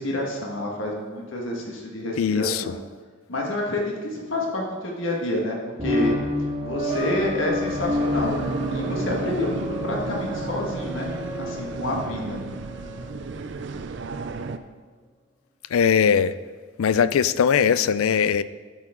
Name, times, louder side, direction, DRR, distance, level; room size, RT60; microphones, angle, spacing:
voice 1, 0.0-2.8 3.3-6.2 6.6-8.4 8.7-12.4, left 1 dB, 65° left, -1 dB, 1.6 m, -28 dB
voice 2, 2.2-2.6 15.7-16.3 16.8-18.4, left 7 dB, 80° left, 15 dB, 0.4 m, -20 dB
sound 1, 5.8-13.1, left 1 dB, 25° right, 1.7 m, -29 dB
sound 2, 7.7-14.6, right 4 dB, 55° right, 0.5 m, -33 dB
12.5 x 6.6 x 3.7 m, 1.5 s
head